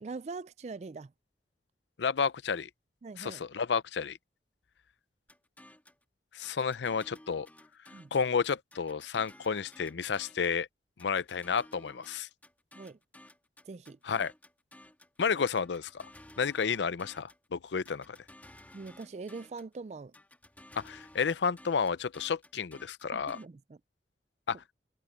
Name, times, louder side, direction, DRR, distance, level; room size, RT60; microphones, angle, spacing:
voice 1, 0.0-1.1 3.0-3.4 7.9-8.1 12.7-13.0 13.7-14.0 18.7-20.1 23.1-23.8, right 4 dB, 40° right, 0.3 m, -42 dB
voice 2, 2.0-2.7 3.2-4.2 6.3-7.5 8.1-10.7 11.0-12.3 14.0-14.3 15.2-16.1 16.4-18.2 20.8-23.4 24.5-24.6, left 6 dB, 85° left, 0.5 m, -31 dB
sound 1, 5.3-6.0 6.4-8.3 8.7-10.6 11.0-15.2 15.6-17.5 17.9-19.7 20.1-23.5, left 1 dB, 10° left, 2.5 m, -55 dB
head